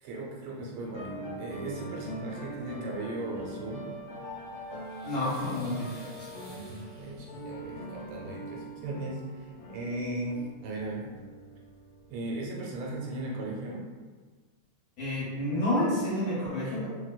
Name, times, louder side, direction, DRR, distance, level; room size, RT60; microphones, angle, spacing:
voice 1, 0.0-3.9 6.5-9.2 9.7-11.1 12.1-13.8, right 2 dB, 85° right, -3 dB, 1.5 m, -37 dB
sound 1, 0.8-12.1, equal, 75° left, 1.3 m, -42 dB
sound 2, 4.6-7.7 8.9-9.0 9.3-9.5, right 1 dB, 40° right, 0.6 m, -55 dB
voice 2, 5.0-6.4 15.0-16.9, left 1 dB, 55° left, -9 dB, 1.1 m, -30 dB
3.3 x 2.6 x 2.2 m, 1.4 s
omnidirectional pair, 2.4 m